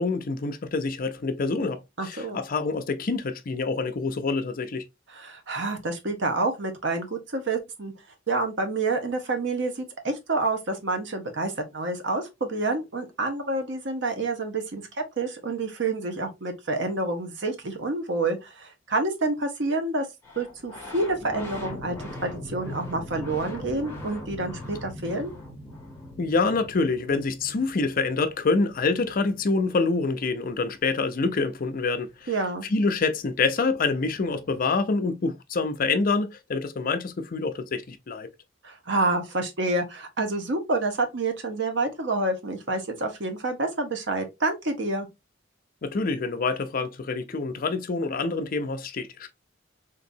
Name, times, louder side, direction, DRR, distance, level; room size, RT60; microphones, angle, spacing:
voice 1, 0.0-4.8 26.2-32.3 32.6-38.3 45.8-49.3, left 3 dB, 45° left, 0.5 m, -26 dB
voice 2, 2.0-2.4 5.1-7.9 8.3-14.8 15.2-20.1 20.4-22.0 22.2-25.3 32.3-32.6 38.6-45.1, right 2 dB, 65° right, 0.9 m, -28 dB
sound 1, 20.2-30.6 32.7-32.8 33.0-34.8, left 1 dB, 15° left, 1.0 m, -41 dB
3.8 x 2.7 x 2.6 m
head